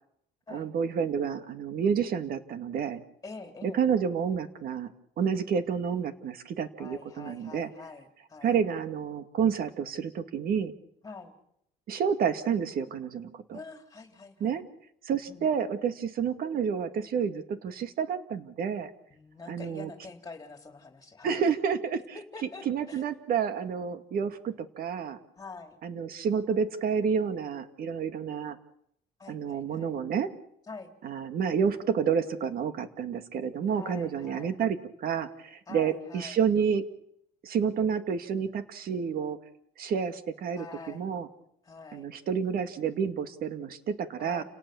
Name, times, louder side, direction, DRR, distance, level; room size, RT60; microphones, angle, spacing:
voice 1, 0.5-3.0 3.6-4.9 5.2-7.7 8.4-10.7 11.9-13.6 14.4-14.6 15.1-18.9 19.5-19.9 21.2-22.0 22.7-25.2 25.8-28.6 29.3-30.3 31.0-36.9 37.4-39.4 39.8-41.3 41.9-44.4, right 7 dB, 60° right, 10 dB, 2.2 m, -29 dB
voice 2, 3.2-3.8 6.8-8.6 11.0-11.3 13.5-14.6 15.3-15.5 19.1-21.4 22.1-23.0 25.4-25.8 29.2-29.9 30.7-30.9 33.7-34.6 35.7-36.4 40.5-41.1 41.6-42.1 44.2-44.4, left 4 dB, 20° left, 5 dB, 3.9 m, -45 dB
29.5 x 18.0 x 7.1 m, 0.74 s
cardioid pair, 110°, 17 cm